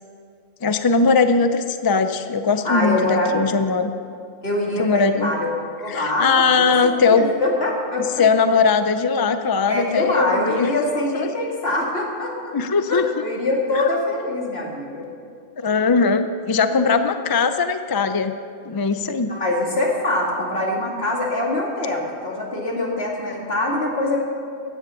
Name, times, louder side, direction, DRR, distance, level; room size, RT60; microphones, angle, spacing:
voice 1, 0.6-3.9 4.8-5.3 5.9-7.3 8.0-10.7 11.1-11.3 12.5-13.1 13.7-13.8 15.6-18.4 18.7-19.3, left 4 dB, 30° left, 9 dB, 0.4 m, -20 dB
voice 2, 2.6-3.4 4.4-5.5 5.8-8.1 9.7-12.5 12.9-15.0 19.3-24.2, left 2 dB, 70° left, -2 dB, 2.7 m, -24 dB
15.5 x 9.9 x 5.6 m, 2.4 s
omnidirectional pair, 1.1 m